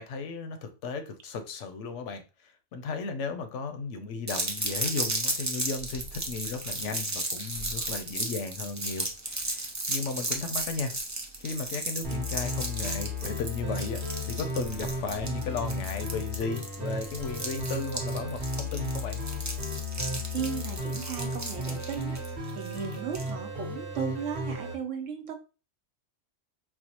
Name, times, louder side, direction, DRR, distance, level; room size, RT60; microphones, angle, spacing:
voice 1, 0.0-10.9 11.4-14.0 14.3-19.2, left 4 dB, 75° left, 8 dB, 0.9 m, -35 dB
sound 1, 4.3-23.3, right 2 dB, 30° right, 0.3 m, -34 dB
sound 2, 12.0-24.7, left 1 dB, 60° right, 1.2 m, -34 dB
voice 2, 20.3-22.2 22.6-25.3, right 7 dB, 80° right, 5 dB, 1.0 m, -35 dB
4.5 x 2.0 x 2.8 m, 0.31 s
omnidirectional pair, 1.3 m